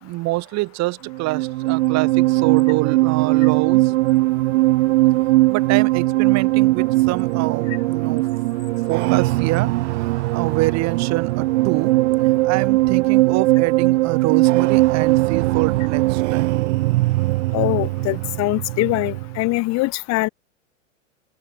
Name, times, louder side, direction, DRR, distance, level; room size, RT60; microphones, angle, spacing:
voice 1, 0.0-3.9 5.5-8.3 8.8-9.7 10.3-11.9 12.4-16.6, right 20 dB, 45° right, 3.3 m, -25 dB
sound 1, 1.1-19.5, right 20 dB, 60° right, 7.0 m, -19 dB
voice 2, 17.5-20.3, left 22 dB, 45° left, 2.1 m, -22 dB
open air
hypercardioid pair, 105°, 39 cm